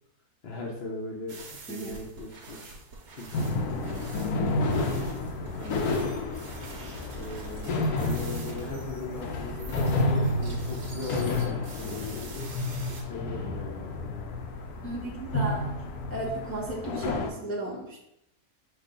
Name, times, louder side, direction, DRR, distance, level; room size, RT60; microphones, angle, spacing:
voice 1, 0.4-2.8 3.1-4.9 5.4-6.1 7.1-12.5 12.8-14.4, left 3 dB, 55° left, -2 dB, 0.8 m, -39 dB
sound 1, 1.3-13.0, right 3 dB, 85° right, 1.3 m, -46 dB
sound 2, 3.3-17.3, left 2 dB, 80° left, 1.1 m, -30 dB
voice 2, 14.8-15.7 16.1-18.0, right 1 dB, 15° left, -5 dB, 0.6 m, -34 dB
5.9 x 2.4 x 3.7 m, 0.81 s
omnidirectional pair, 1.6 m